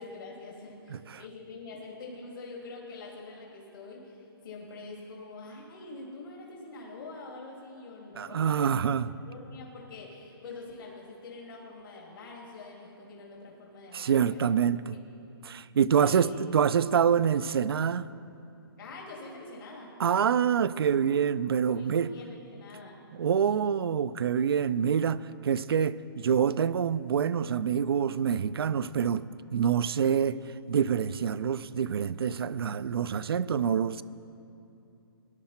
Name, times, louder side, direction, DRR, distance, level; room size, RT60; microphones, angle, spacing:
voice 1, 0.0-8.8 9.2-15.0 15.9-16.4 18.8-19.9 21.7-23.0 23.4-23.6, left 3 dB, 60° left, -2 dB, 2.7 m, -45 dB
voice 2, 8.2-9.1 13.9-14.9 15.4-18.1 20.0-22.1 23.2-29.2 29.5-30.4 30.7-34.0, right 7 dB, 70° right, 16 dB, 0.5 m, -26 dB
19.0 x 11.5 x 4.4 m, 2.7 s
hypercardioid pair, 145°, 13 cm